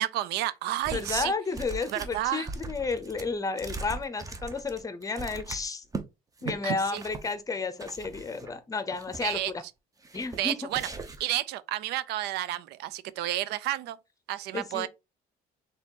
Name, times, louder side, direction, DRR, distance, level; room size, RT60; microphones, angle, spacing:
voice 1, 0.0-1.3 1.9-2.5 6.6-7.0 9.2-9.5 10.3-10.9 11.2-14.0 14.3-14.9, right 14 dB, 80° right, 0.4 m, -31 dB
sound 1, 0.8-1.3 1.5-6.0 6.4-6.6 6.9-7.3 7.8-8.5 8.9-9.5 10.0-10.4 10.7-11.3, right 3 dB, 20° right, 0.7 m, -40 dB
voice 2, 0.9-5.8 6.4-9.6 10.1-10.6 14.5-14.9, left 4 dB, 20° left, 0.7 m, -32 dB
4.2 x 3.5 x 2.9 m
cardioid pair, 110°, 17 cm